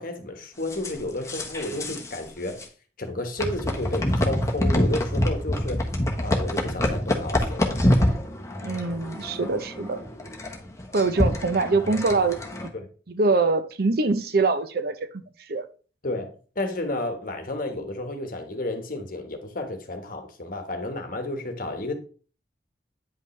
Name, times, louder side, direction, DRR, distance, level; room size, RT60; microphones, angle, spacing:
voice 1, 0.0-2.6 3.0-5.9 6.2-7.8 11.9-12.0 12.7-12.9 16.0-21.9, left 2 dB, 50° left, 1.3 m, -32 dB
sound 1, 0.7-2.2 2.5-2.6 3.4-12.7, left 1 dB, 15° left, 1.2 m, -26 dB
voice 2, 8.6-10.0 10.9-12.4 13.1-15.1 15.5-15.7, right 3 dB, 60° right, 0.6 m, -23 dB
9.4 x 5.3 x 3.2 m
head